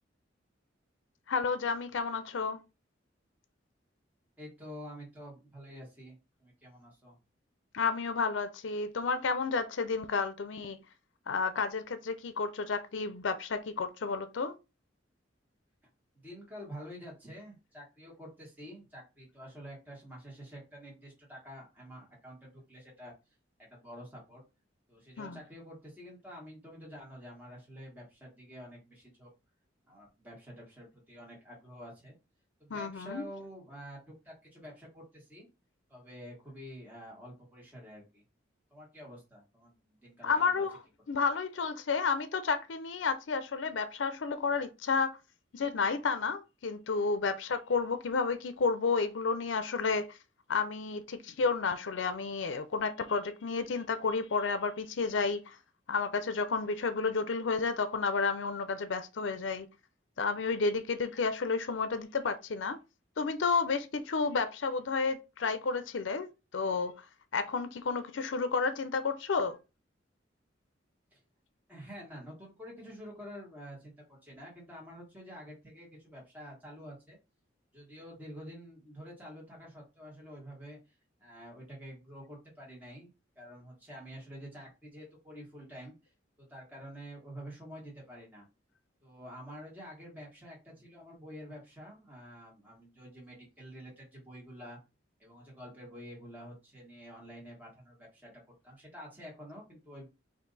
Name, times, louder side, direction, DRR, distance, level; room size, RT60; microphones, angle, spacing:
voice 1, 1.3-2.6 7.7-10.8 11.3-14.5 25.2-25.4 32.7-33.2 40.2-40.8 41.1-45.2 45.5-50.2 50.5-55.6 55.9-59.7 60.2-62.8 63.2-67.1 67.3-69.6, left 4 dB, 85° left, 0.5 m, -31 dB
voice 2, 4.4-7.2 16.1-23.1 23.7-24.4 24.9-29.3 29.9-32.1 32.6-35.5 35.9-38.2 38.7-40.6 71.1-71.2 71.7-77.2 77.7-80.8 81.2-83.1 83.3-85.9 86.4-88.4 89.0-94.8 95.2-98.3 98.6-100.1, equal, 10° right, 1.5 m, -48 dB
4.4 x 2.6 x 4.0 m
head